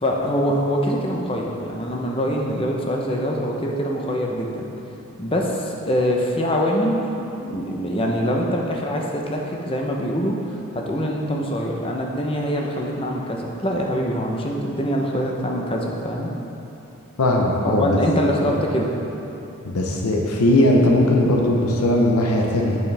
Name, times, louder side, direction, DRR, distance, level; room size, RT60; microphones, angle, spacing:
voice 1, 0.0-4.7 5.2-7.1 7.4-16.3 17.6-18.9, equal, 25° left, 0 dB, 0.6 m, -24 dB
voice 2, 17.2-18.0 18.4-18.5 19.6-22.8, left 1 dB, 90° left, 0 dB, 0.8 m, -18 dB
8.4 x 6.7 x 3.4 m, 2.9 s
head